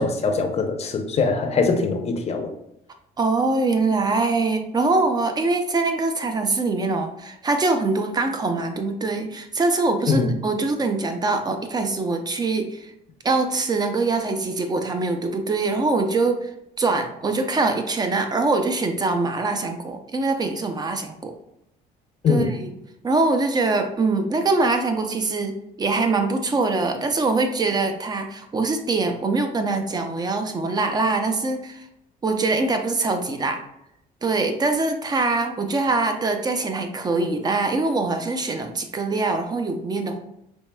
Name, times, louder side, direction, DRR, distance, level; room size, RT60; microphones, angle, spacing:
voice 1, 0.0-2.5 10.1-10.4 22.2-22.5, left 4 dB, 40° left, 5 dB, 0.6 m, -22 dB
voice 2, 3.2-12.9 13.2-16.5 16.8-21.3 22.3-22.7 23.0-31.8 32.2-33.6 34.2-40.2, right 3 dB, 25° right, 6 dB, 0.5 m, -23 dB
4.5 x 3.1 x 2.2 m, 0.80 s
cardioid pair, 110°, 17 cm